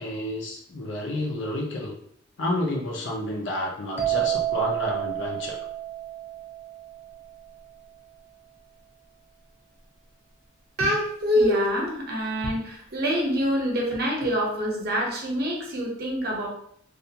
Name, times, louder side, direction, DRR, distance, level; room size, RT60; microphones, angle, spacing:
voice 1, 0.0-1.9 2.4-5.6, left 1 dB, 65° left, -1 dB, 0.6 m, -30 dB
sound 1, 4.0-7.6, right 13 dB, 10° right, 0.3 m, -30 dB
voice 2, 10.8-16.5, equal, 50° right, -1 dB, 0.7 m, -25 dB
2.4 x 2.3 x 2.8 m, 0.66 s
head